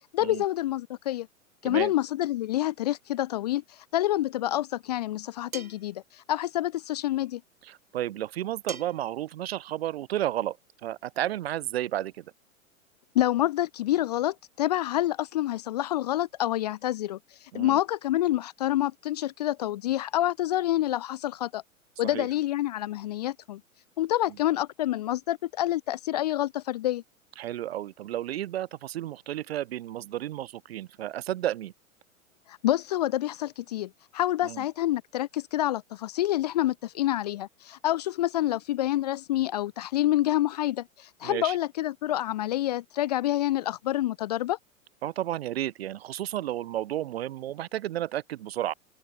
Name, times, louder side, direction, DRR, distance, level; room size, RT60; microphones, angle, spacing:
voice 1, 0.1-1.3 1.6-3.6 3.9-7.4 13.1-21.6 22.0-23.6 24.0-27.0 32.5-44.6, left 14 dB, 30° left, 0.4 m, -27 dB
sound 1, 5.5-5.9 8.7-9.1, right 5 dB, 80° right, 1.8 m, -40 dB
voice 2, 7.6-10.6 10.8-12.3 17.5-17.8 22.0-22.3 27.4-31.7 34.4-34.6 41.2-41.6 45.0-48.7, right 13 dB, 50° right, 0.6 m, -32 dB
open air
figure-of-eight pair, 105°, 41 cm